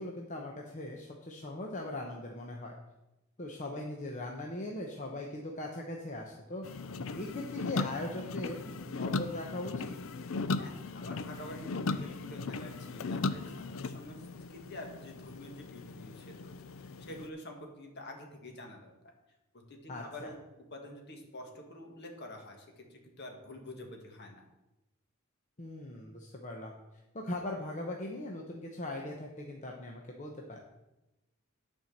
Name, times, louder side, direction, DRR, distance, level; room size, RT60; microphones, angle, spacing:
voice 1, 0.0-2.7 3.4-6.7 7.1-9.9 19.9-20.3 25.6-26.8 27.1-30.6, left 1 dB, 35° left, 0 dB, 0.9 m, -40 dB
sound 1, 6.6-17.3, left 3 dB, 65° left, 0.5 m, -37 dB
voice 2, 10.6-16.5 16.8-18.9 19.5-20.3 20.7-24.4, left 1 dB, 50° left, 2 dB, 1.7 m, -47 dB
10.0 x 4.6 x 7.2 m, 0.98 s
head